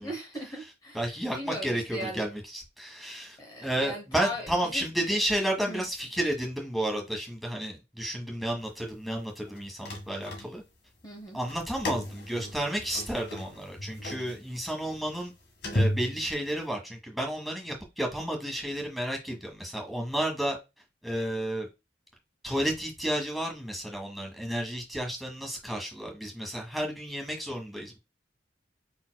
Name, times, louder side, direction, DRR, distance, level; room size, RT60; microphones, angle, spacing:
voice 1, 0.0-2.2 3.4-5.2 5.7-5.8 11.0-11.4, equal, 25° left, 0.9 m, -39 dB
voice 2, 0.9-10.6 11.3-15.3 15.7-20.6 21.0-21.7 22.4-28.0, right 1 dB, ahead, 1.3 m, -32 dB
sound 1, 9.5-10.9 11.4-16.7, equal, 90° left, 1.8 m, -34 dB
5.4 x 4.3 x 2.2 m
head